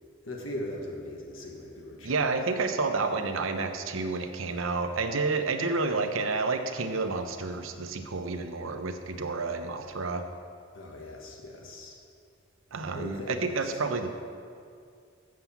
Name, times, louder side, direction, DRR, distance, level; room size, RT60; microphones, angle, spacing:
voice 1, 0.2-2.6 10.7-12.0 12.9-13.8, left 1 dB, 80° left, 0 dB, 1.4 m, -40 dB
voice 2, 2.0-10.2 12.7-14.1, right 3 dB, 85° right, 7 dB, 0.8 m, -30 dB
7.6 x 7.4 x 7.0 m, 2.3 s
head